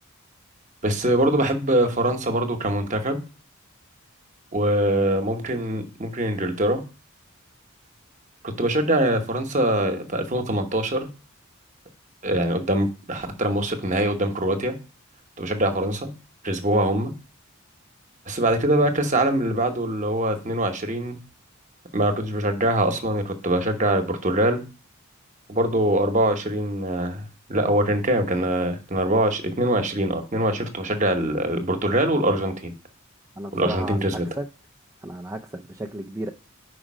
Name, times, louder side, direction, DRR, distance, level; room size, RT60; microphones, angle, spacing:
voice 1, 0.8-3.2 4.5-6.8 8.6-11.1 12.2-14.8 15.4-16.1 16.4-17.1 18.3-21.2 21.9-24.6 25.5-27.2 27.5-32.7 33.5-34.3, right 1 dB, 35° right, 1.0 m, -23 dB
voice 2, 33.4-34.4 35.0-36.3, right 1 dB, 15° right, 0.4 m, -33 dB
5.1 x 4.9 x 6.1 m
head